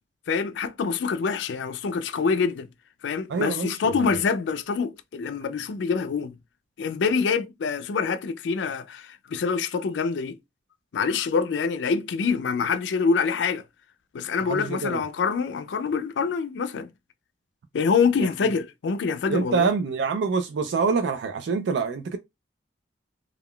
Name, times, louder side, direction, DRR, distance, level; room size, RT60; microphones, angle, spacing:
voice 1, 0.3-2.7 3.0-6.4 6.8-10.4 10.9-13.6 14.1-16.9 17.7-19.7, left 5 dB, 85° left, 0.4 m, -25 dB
voice 2, 3.3-4.2 14.4-15.0 18.2-18.3 19.3-22.2, right 4 dB, 80° right, 0.4 m, -26 dB
2.3 x 2.2 x 3.6 m
head